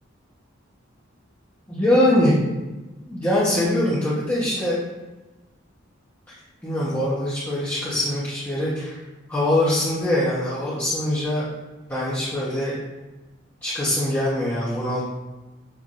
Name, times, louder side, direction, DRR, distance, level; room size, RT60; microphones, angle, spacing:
voice 1, 1.7-2.4 3.1-4.8 6.3-6.4 6.6-9.0 9.3-11.5 11.9-12.8 13.6-15.0, left 1 dB, 10° left, -11 dB, 0.9 m, -23 dB
7.0 x 2.6 x 2.5 m, 1.1 s
head